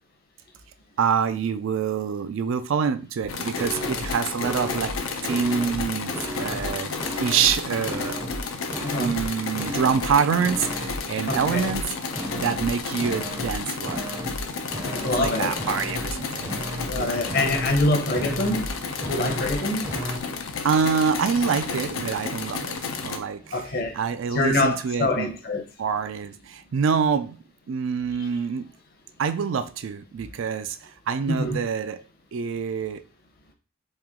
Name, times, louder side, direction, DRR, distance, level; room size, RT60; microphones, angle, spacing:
voice 1, 1.0-5.0 5.2-6.9 7.2-8.2 9.0-11.9 12.3-14.0 15.0-16.6 16.9-17.2 19.9-20.2 20.6-23.7 23.9-25.3 25.8-28.7 29.2-32.0 32.3-33.0, right 6 dB, 65° right, 0.3 m, -26 dB
sound 1, 3.2-3.3 3.6-4.1 4.4-5.0 5.3-5.8 6.1-6.7 7.0-7.6 7.8-8.4 8.7-9.3 9.6-10.1 10.4-11.0 11.3-11.8 12.1-12.7 13.0-13.6 13.8-14.4 14.7-15.3 15.6-16.1 16.4-17.0 17.3-17.8 18.1-18.7 19.0-19.6 19.8-20.2, equal, 10° right, 0.5 m, -34 dB
sound 2, 3.3-23.2, left 5 dB, 85° left, 0.5 m, -32 dB
voice 2, 8.8-9.1 11.3-11.7 14.9-15.6 16.6-20.5 23.5-24.0 24.3-25.6 31.3-31.6, left 2 dB, 45° left, 0.7 m, -26 dB
3.1 x 2.9 x 3.6 m
head